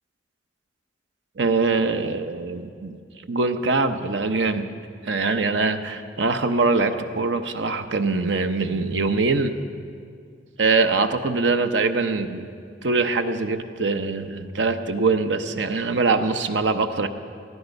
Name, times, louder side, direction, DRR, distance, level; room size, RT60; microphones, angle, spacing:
voice 1, 1.4-3.0 3.3-4.7 5.0-9.5 10.6-12.5 12.8-17.1, right 3 dB, 80° right, 8 dB, 0.8 m, -23 dB
19.0 x 13.5 x 5.3 m, 2.3 s
head